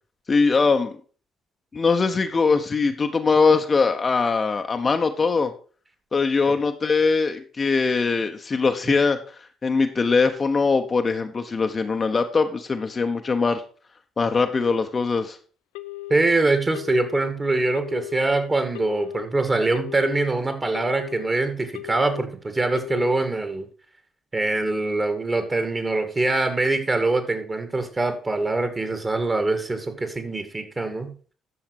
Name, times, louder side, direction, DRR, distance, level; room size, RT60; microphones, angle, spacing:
voice 1, 0.3-0.9 1.7-5.5 6.1-9.2 9.6-13.6 14.2-15.4, left 4 dB, 35° left, 6 dB, 1.0 m, -21 dB
Telephone, 15.7-16.3 16.7-17.3 17.7-18.3 18.7-19.3 19.7-20.3 20.7-21.3 21.7-22.3 22.7-23.3, left 18 dB, 70° left, 0.4 m, -36 dB
voice 2, 16.1-23.7 24.3-31.1, right 2 dB, 25° right, 8 dB, 2.2 m, -24 dB
11.0 x 7.0 x 4.8 m, 0.40 s
figure-of-eight pair, 45°, 0 cm